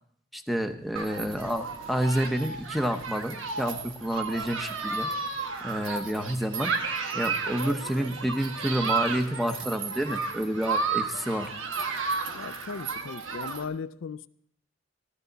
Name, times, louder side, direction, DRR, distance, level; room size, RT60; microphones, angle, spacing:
voice 1, 0.3-5.1 5.6-6.7 7.1-11.5, equal, ahead, 8 dB, 0.8 m, -29 dB
Human group actions, 0.9-13.6, right 4 dB, 80° right, 1.2 m, -32 dB
voice 2, 12.3-14.3, left 5 dB, 75° left, 14 dB, 0.5 m, -37 dB
14.5 x 13.5 x 4.0 m, 0.64 s
head